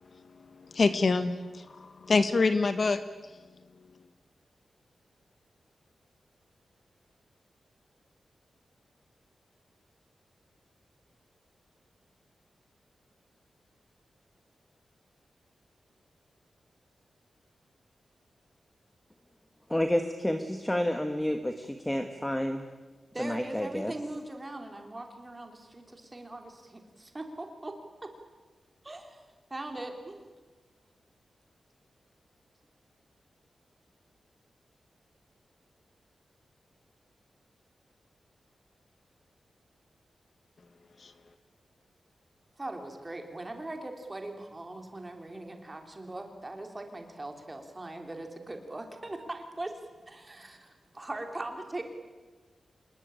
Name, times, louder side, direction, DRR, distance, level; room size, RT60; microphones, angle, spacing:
voice 1, 0.1-3.0 41.0-41.1, left 3 dB, 45° left, 10 dB, 1.3 m, -27 dB
voice 2, 19.7-22.6 23.2-23.9, left 1 dB, 10° left, 6 dB, 1.3 m, -30 dB
voice 3, 23.1-27.7 28.0-28.1 28.8-29.2 29.5-30.2 42.6-49.7 50.1-50.7 50.9-51.8, right 2 dB, 20° right, 4 dB, 3.3 m, -40 dB
26.5 x 21.0 x 9.0 m, 1.3 s
wide cardioid pair, 170°, 0 cm